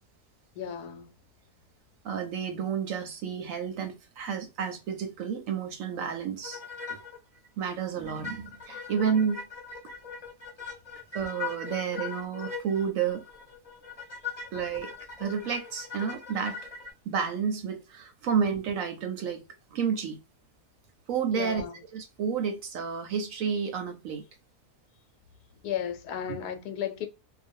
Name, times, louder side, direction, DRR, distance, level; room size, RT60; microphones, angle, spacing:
voice 1, 0.6-1.2 21.3-21.8 25.6-27.1, left 9 dB, 80° left, 1.1 m, -34 dB
voice 2, 2.0-6.6 6.9-7.0 7.6-9.4 11.1-13.2 14.5-14.9 15.2-16.6 17.1-19.4 19.7-20.2 21.1-21.7 21.9-24.2 26.3-26.4, right 7 dB, 70° right, 0.9 m, -30 dB
sound 1, 6.4-7.2 7.4-7.5 8.1-16.9, left 5 dB, 30° left, 0.8 m, -40 dB
2.5 x 2.2 x 2.5 m
omnidirectional pair, 1.6 m